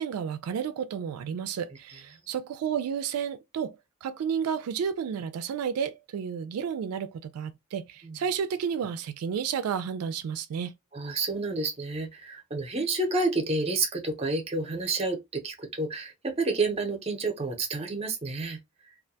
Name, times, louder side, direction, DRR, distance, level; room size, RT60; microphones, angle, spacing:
voice 1, 0.0-10.7, right 7 dB, 85° right, 0.3 m, -31 dB
voice 2, 10.9-18.6, right 3 dB, 30° right, 0.6 m, -29 dB
2.3 x 2.2 x 2.6 m
head